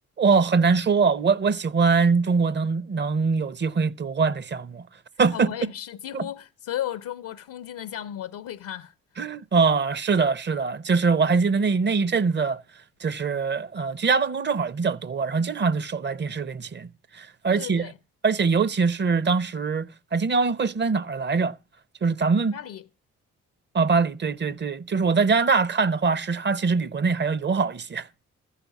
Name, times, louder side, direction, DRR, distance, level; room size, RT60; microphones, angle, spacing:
voice 1, 0.2-4.8 5.2-5.5 6.1-6.2 9.2-12.6 13.0-16.9 17.1-17.9 18.2-21.5 22.0-22.5 23.7-28.1, right 4 dB, 35° right, 0.7 m, -23 dB
voice 2, 5.3-8.9 17.5-18.0 22.5-22.8, left 11 dB, 80° left, 0.6 m, -35 dB
14.0 x 5.7 x 8.1 m
supercardioid pair, 55°, 32 cm